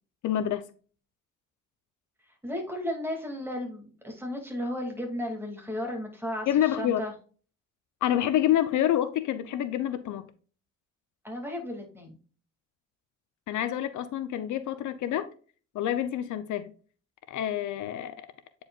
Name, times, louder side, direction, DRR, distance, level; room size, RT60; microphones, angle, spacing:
voice 1, 0.2-0.7 6.5-7.1 8.0-10.3 13.5-15.3 15.7-16.7 17.3-18.3, left 11 dB, 75° left, 0.7 m, -27 dB
voice 2, 2.4-7.1 11.2-12.2, equal, 5° right, 2.4 m, -34 dB
8.8 x 4.8 x 2.4 m
cardioid pair, 90°, 30 cm